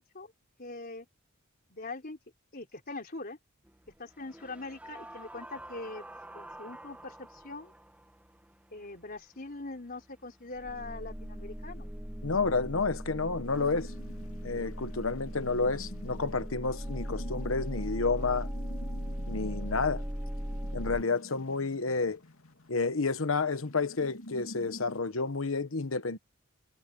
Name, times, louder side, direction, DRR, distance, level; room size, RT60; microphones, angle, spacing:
voice 1, 0.6-1.1 1.7-2.2 2.5-3.4 4.0-6.1 6.3-7.7 8.7-11.9, left 3 dB, 45° left, 4.1 m, -42 dB
sound 1, 3.7-3.8 4.2-8.0 10.5-21.0, equal, 5° right, 1.5 m, -39 dB
voice 2, 12.2-13.9 14.4-18.5 19.3-20.0 20.7-22.2 22.7-26.2, left 4 dB, 70° left, 1.2 m, -30 dB
sound 2, 13.5-25.0, left 1 dB, 90° left, 2.7 m, -49 dB
head